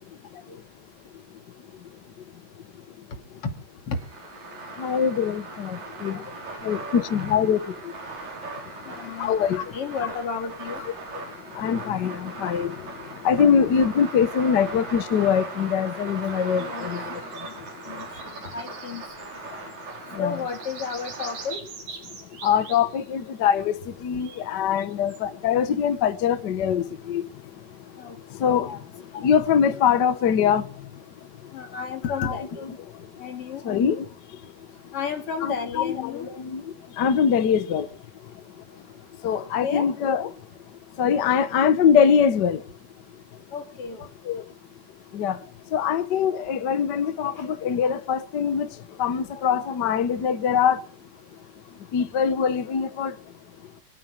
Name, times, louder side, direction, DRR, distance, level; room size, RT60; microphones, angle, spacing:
sound 1, 3.9-21.5, right 3 dB, 60° right, 6.2 m, -39 dB
voice 1, 4.8-6.2 6.6-7.6 9.2-9.6 11.6-12.7 13.2-17.2 20.1-20.4 22.4-27.2 28.4-28.7 29.2-30.6 32.2-32.3 33.6-34.0 35.4-36.6 37.0-37.9 39.2-40.3 41.0-42.6 44.3-44.4 45.1-45.4 45.7-48.7 49.0-50.8 51.9-53.1, left 7 dB, 75° left, 0.9 m, -23 dB
voice 2, 8.8-10.8 13.6-13.7 16.6-16.9 17.4-17.5 17.9-19.0 20.2-21.6 28.0-28.2 28.6-28.8 31.5-32.7 33.2-33.6 34.9-36.3 39.2-39.9 43.5-44.0 47.3-47.5, left 6 dB, 45° left, 3.2 m, -32 dB
sound 2, 16.1-20.0 20.3-23.3 24.2-25.2, right 5 dB, 85° right, 5.1 m, -44 dB
23.5 x 8.9 x 6.5 m
omnidirectional pair, 3.8 m